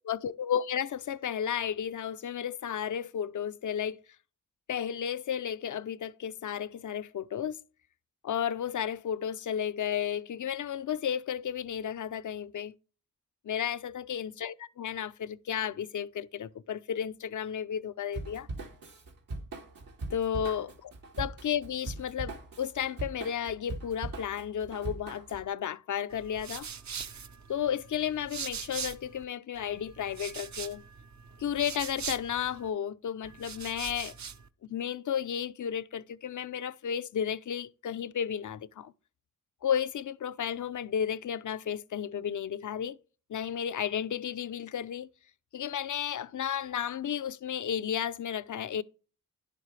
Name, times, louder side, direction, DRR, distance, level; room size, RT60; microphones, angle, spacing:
voice 1, 0.0-4.0 4.7-7.6 8.2-12.7 13.4-18.5 20.1-20.9 21.2-26.7 27.5-30.8 31.4-34.1 34.7-38.9 39.6-43.0 43.3-45.1 45.5-48.8, left 9 dB, 65° left, 0.6 m, -33 dB
Drum kit / Drum, 18.1-25.4, right 2 dB, 85° right, 2.2 m, -40 dB
sound 1, 26.1-29.2 29.5-32.7 33.2-34.5, right 7 dB, 60° right, 0.8 m, -42 dB
10.5 x 7.7 x 3.2 m
cardioid pair, 60°, 32 cm